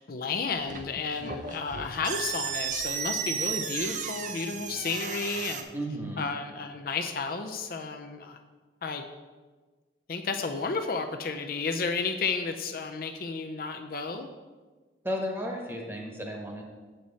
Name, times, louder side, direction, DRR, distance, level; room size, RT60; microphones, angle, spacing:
voice 1, 0.0-5.6 6.2-8.4 8.8-9.0 10.1-14.3, left 4 dB, 50° left, 6 dB, 0.5 m, -32 dB
sound 1, 0.6-5.6, right 6 dB, 45° right, 0.6 m, -34 dB
voice 2, 5.7-6.3 15.0-16.6, equal, 15° right, 0 dB, 1.2 m, -33 dB
7.9 x 7.6 x 4.1 m, 1.4 s
head